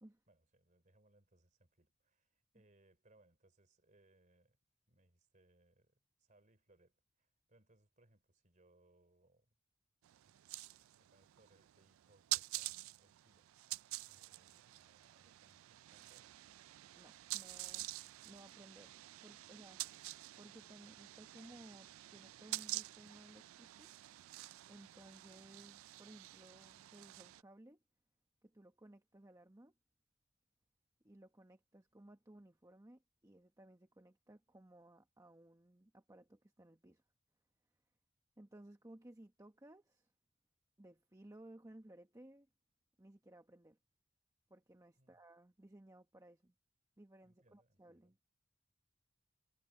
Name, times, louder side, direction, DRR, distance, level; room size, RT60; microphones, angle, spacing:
voice 1, 0.3-4.6 4.9-9.6 10.2-10.4 10.9-13.5 14.1-16.7 45.0-45.2 47.2-48.2, right 2 dB, 40° right, 3.3 m, -72 dB
sound 1, 10.0-27.4, right 18 dB, 90° right, 0.3 m, -48 dB
voice 2, 16.9-17.9 18.2-18.9 19.2-19.8 20.4-23.9 24.6-27.8 28.4-29.7 31.0-37.0 38.4-40.1 40.8-42.5 43.0-43.8 44.5-46.5 47.0-48.2, right 1 dB, 15° right, 1.0 m, -59 dB
head